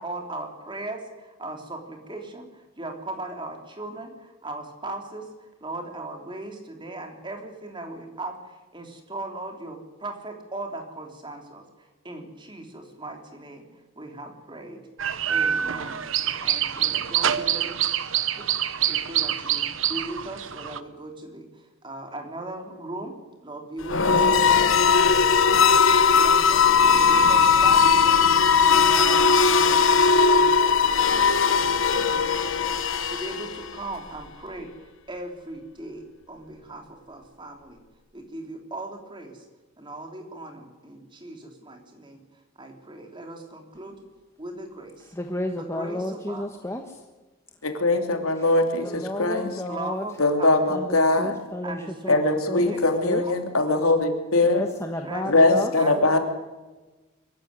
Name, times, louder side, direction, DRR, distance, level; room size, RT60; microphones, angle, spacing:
voice 1, 0.0-17.9 18.4-18.5 18.9-25.8 26.1-32.7 33.1-37.8 38.1-39.4 39.8-44.0 44.4-45.1 45.5-46.4 49.7-50.7 51.6-52.2 52.6-52.8 53.2-53.3 53.6-53.8 55.0-56.1, right 2 dB, 20° right, 3 dB, 3.3 m, -38 dB
sound 1, 15.0-20.8, right 10 dB, 65° right, 1.0 m, -26 dB
sound 2, 23.8-33.8, left 5 dB, 65° left, 1.2 m, -19 dB
voice 2, 45.1-47.0 48.8-50.1 50.7-51.8 52.0-52.7 53.0-53.2 54.5-55.7, left 1 dB, 15° left, 3 dB, 1.3 m, -32 dB
voice 3, 47.6-49.6 50.2-51.4 52.1-54.6 55.3-56.2, left 2 dB, 90° left, 5 dB, 3.0 m, -21 dB
23.5 x 14.5 x 9.8 m, 1.2 s
head